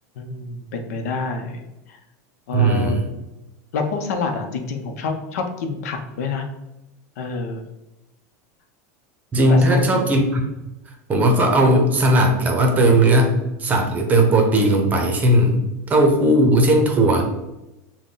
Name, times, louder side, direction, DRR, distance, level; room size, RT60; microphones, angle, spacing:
voice 1, 0.2-1.6 1.9-2.0 2.5-3.2 3.7-6.5 7.2-7.6 9.5-9.9, left 4 dB, 80° left, 5 dB, 0.7 m, -27 dB
voice 2, 2.5-3.0 9.3-10.4 11.1-17.2, right 1 dB, 20° right, 3 dB, 0.7 m, -17 dB
6.2 x 2.2 x 3.8 m, 0.97 s
supercardioid pair, 150°, 8 cm